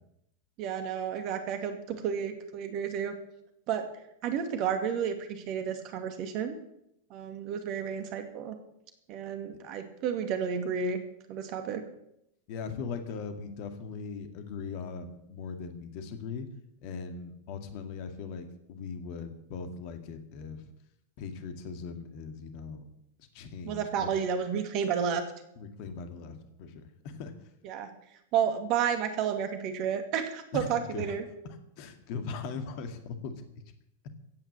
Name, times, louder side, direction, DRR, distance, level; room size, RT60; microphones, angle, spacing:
voice 1, 0.6-3.1 3.7-3.8 4.2-6.6 7.1-8.6 9.1-11.0 11.3-11.8 23.6-25.2 27.6-27.9 28.3-31.2, right 7 dB, 40° right, 7 dB, 2.3 m, -31 dB
voice 2, 12.5-16.5 16.8-20.7 21.2-22.8 23.2-24.1 25.6-27.3 30.5-31.1 31.8-33.4, left 5 dB, 45° left, 7 dB, 2.1 m, -39 dB
15.5 x 9.4 x 7.5 m, 0.78 s
figure-of-eight pair, 90°, 0 cm